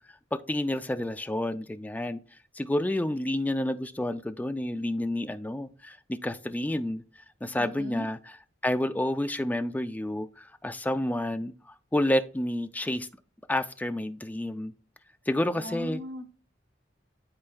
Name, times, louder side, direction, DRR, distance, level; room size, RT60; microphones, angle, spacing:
voice 1, 0.3-2.2 2.6-7.0 7.4-8.4 8.6-11.5 11.9-13.1 13.5-14.7 15.3-16.0, left 1 dB, 10° left, 0.3 m, -29 dB
voice 2, 7.6-8.1 15.5-16.2, equal, 80° right, 1.1 m, -37 dB
12.0 x 4.3 x 2.3 m
head